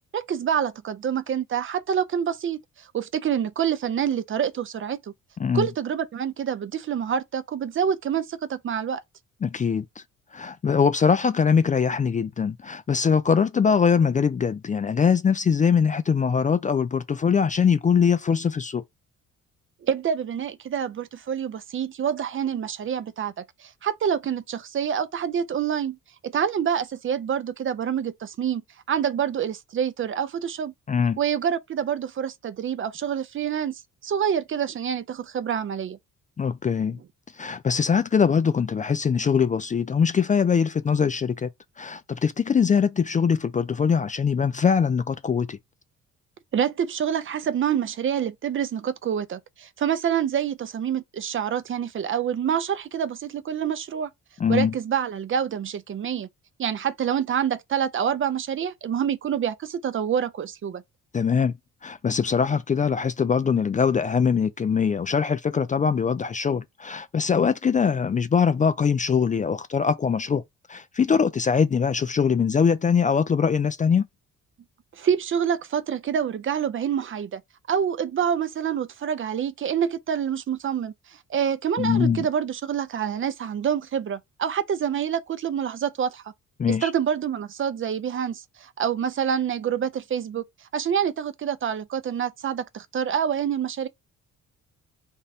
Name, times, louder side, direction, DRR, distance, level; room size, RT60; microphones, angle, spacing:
voice 1, 0.1-5.0 5.5-9.0 19.8-26.0 26.2-28.6 28.9-30.7 31.2-36.0 46.5-54.1 54.5-56.3 56.6-60.8 74.9-77.4 77.7-86.2 86.7-90.4 90.7-93.9, right 8 dB, 45° right, 0.5 m, -27 dB
voice 2, 9.4-10.0 10.3-18.8 30.9-31.2 36.4-37.0 37.4-41.5 41.8-45.6 54.4-54.7 61.1-61.5 61.8-70.4 70.7-74.1 81.8-82.3 86.6-86.9, left 6 dB, 25° left, 0.4 m, -22 dB
3.5 x 2.1 x 4.2 m
cardioid pair, 90°, 30 cm